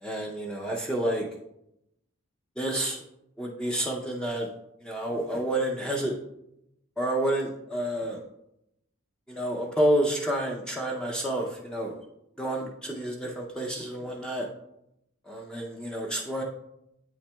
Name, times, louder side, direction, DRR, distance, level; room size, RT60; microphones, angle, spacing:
voice 1, 0.0-1.3 2.6-3.0 3.4-4.5 4.8-6.2 7.0-8.2 9.3-12.0 12.4-14.5 15.3-16.4, right 1 dB, 5° left, -1 dB, 0.5 m, -29 dB
8.2 x 5.7 x 2.2 m, 0.82 s
head